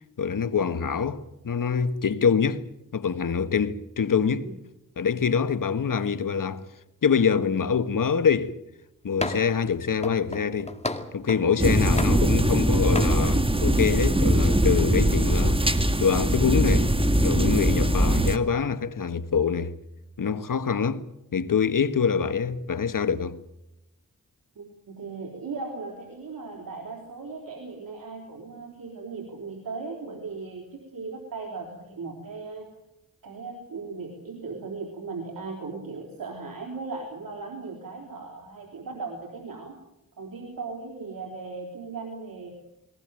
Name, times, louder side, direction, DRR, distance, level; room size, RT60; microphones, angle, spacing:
voice 1, 0.2-2.6 2.9-4.5 5.0-6.6 7.0-8.5 9.0-10.8 11.1-16.9 17.2-19.7 20.2-21.0 21.3-23.4, left 6 dB, 70° left, 1.5 m, -25 dB
sound 1, 9.2-9.6 10.0-11.5 12.0-12.6 12.9-13.2, left 2 dB, 20° left, 2.3 m, -33 dB
sound 2, 11.6-18.4, right 1 dB, 15° right, 2.0 m, -21 dB
voice 2, 24.6-32.7 33.2-39.8 40.2-42.5, right 4 dB, 80° right, 3.8 m, -37 dB
21.0 x 19.0 x 9.0 m
cardioid pair, 55°, 34 cm